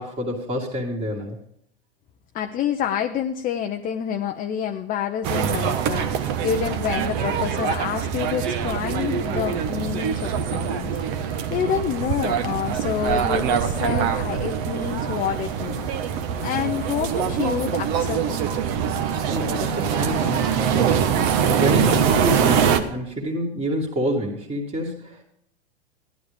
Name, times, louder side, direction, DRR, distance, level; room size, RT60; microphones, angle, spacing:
voice 1, 0.0-1.4 19.3-21.0 21.5-25.2, equal, 15° right, -4 dB, 2.5 m, -27 dB
voice 2, 2.3-11.0 11.5-15.9 16.4-18.4, left 9 dB, 25° left, 5 dB, 0.7 m, -28 dB
sound 1, 5.2-22.8, right 8 dB, 45° right, 1.2 m, -24 dB
14.5 x 11.5 x 3.4 m, 0.73 s
hypercardioid pair, 110°, 33 cm